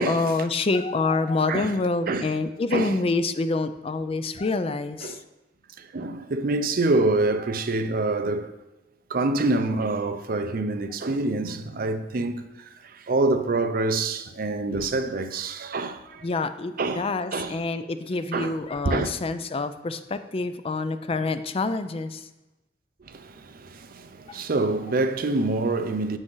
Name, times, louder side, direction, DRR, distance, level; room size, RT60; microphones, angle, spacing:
voice 1, 0.0-5.2 16.2-22.3 24.3-24.4, left 3 dB, 35° left, 0.4 m, -27 dB
voice 2, 1.5-1.8 2.1-2.3 2.7-3.0 5.0-5.2 5.8-8.6 9.1-16.3 16.8-17.6 18.3-18.6 18.9-19.1 23.0-26.2, right 2 dB, 55° right, 0.6 m, -26 dB
7.6 x 6.2 x 3.9 m
head